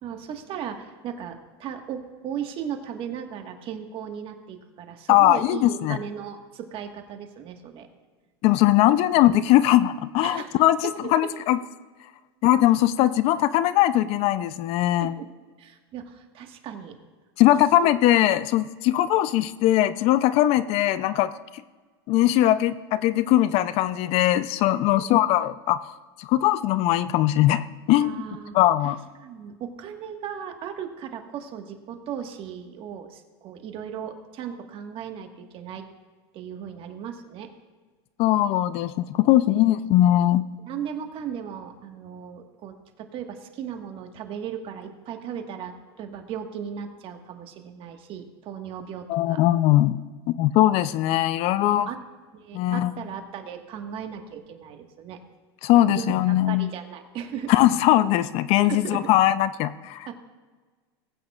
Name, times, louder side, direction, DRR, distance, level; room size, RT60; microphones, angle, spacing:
voice 1, 0.0-7.9 10.2-10.6 11.0-11.1 15.0-15.3 15.6-17.0 17.7-17.9 24.9-25.1 27.9-28.6 28.8-28.9 29.2-35.8 36.3-37.5 40.6-49.4 51.5-52.0 52.3-55.2 55.9-56.2 56.5-57.5 58.6-59.1 60.0-60.1, right 8 dB, 40° right, 5 dB, 1.5 m, -36 dB
voice 2, 5.1-6.0 8.4-11.6 12.4-15.2 17.4-21.3 22.1-28.1 28.5-29.0 38.2-40.4 49.1-50.0 50.4-51.9 52.5-52.9 55.6-56.7 57.5-60.1, left 14 dB, 50° left, 15 dB, 0.5 m, -20 dB
20.0 x 8.7 x 2.4 m, 1.4 s
supercardioid pair, 115°, 13 cm